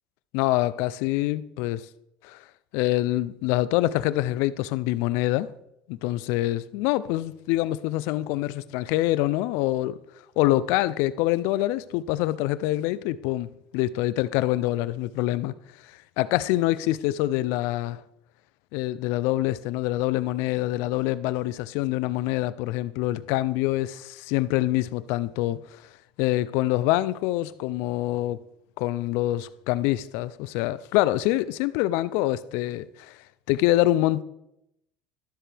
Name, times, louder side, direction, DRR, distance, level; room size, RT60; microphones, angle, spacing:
voice 1, 0.3-1.9 2.2-2.4 2.7-5.5 5.9-10.0 10.4-15.5 16.2-18.0 18.7-25.6 26.2-28.4 28.8-33.2 33.5-34.2, left 16 dB, 70° left, 0.4 m, -25 dB
12.5 x 7.3 x 3.4 m
supercardioid pair, 115°, 4 cm